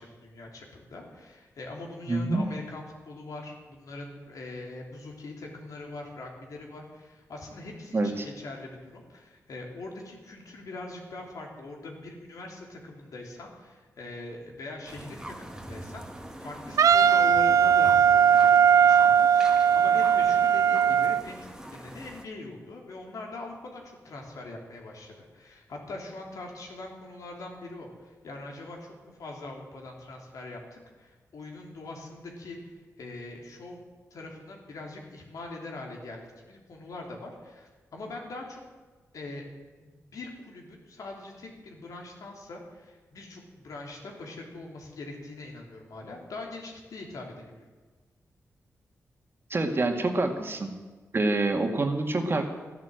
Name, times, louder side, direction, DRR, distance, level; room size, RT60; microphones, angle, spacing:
voice 1, 0.0-33.8 34.1-38.6 39.1-39.4 39.8-47.7, left 2 dB, 75° left, 0 dB, 3.3 m, -42 dB
voice 2, 2.1-2.4 7.9-8.3 49.5-50.7 51.1-52.4, right 2 dB, 40° right, 4 dB, 2.0 m, -26 dB
sound 1, 14.9-22.3, right 1 dB, 10° right, 1.6 m, -43 dB
Wind instrument woodwind instrument, 16.8-21.2, right 8 dB, 70° right, 0.4 m, -19 dB
13.5 x 10.5 x 7.9 m, 1.3 s
cardioid pair, 70°, 6 cm